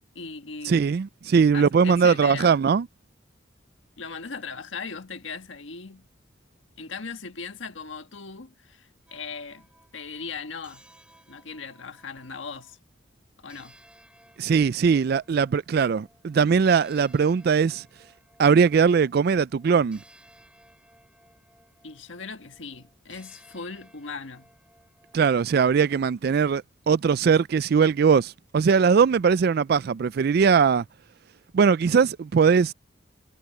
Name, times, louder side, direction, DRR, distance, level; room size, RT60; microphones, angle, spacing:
voice 1, 0.1-0.9 1.5-2.6 4.0-6.1 6.8-9.7 9.9-10.8 11.3-12.8 13.4-13.8 21.8-24.5, left 5 dB, 75° left, 1.5 m, -38 dB
voice 2, 0.7-2.9 14.4-17.8 18.4-20.0 25.1-30.8 31.5-32.7, right 6 dB, 55° right, 0.3 m, -20 dB
sound 1, 9.1-12.8 13.5-26.2, right 1 dB, 5° right, 6.5 m, -58 dB
head